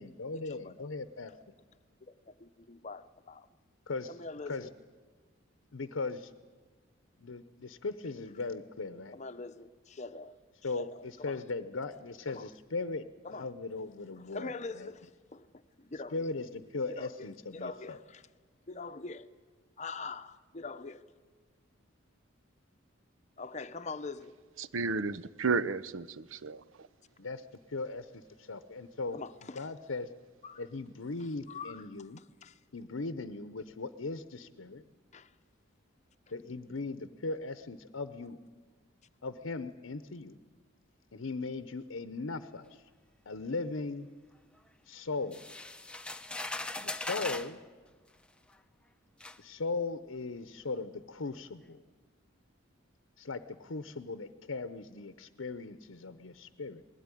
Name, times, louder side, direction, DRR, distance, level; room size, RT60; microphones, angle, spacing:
voice 1, 0.0-1.3 3.9-4.2 4.5-4.7 5.7-6.3 7.2-9.2 10.6-13.0 13.4-14.9 16.1-18.0 27.2-29.2 29.5-30.1 30.6-32.2 32.7-34.8 36.3-38.4 39.2-40.4 41.1-42.8 43.3-44.1 44.9-45.5 46.8-47.6 49.4-51.8 53.2-56.8, left 3 dB, 75° left, 0.8 m, -38 dB
voice 2, 2.0-3.5 4.1-4.7 9.1-10.3 10.7-11.4 12.3-12.5 13.2-13.5 14.3-15.5 15.8-16.3 16.9-18.3 18.7-19.3 19.8-21.0 23.4-24.3 29.1-29.7 30.4-30.6 31.5-31.8 32.4-32.6 35.1-35.3, left 3 dB, 35° left, 0.7 m, -43 dB
voice 3, 24.6-26.6, right 4 dB, 75° right, 0.6 m, -32 dB
sound 1, 45.3-47.5 48.5-48.6 49.2-49.4, left 2 dB, 5° left, 0.7 m, -39 dB
20.5 x 16.5 x 9.8 m
head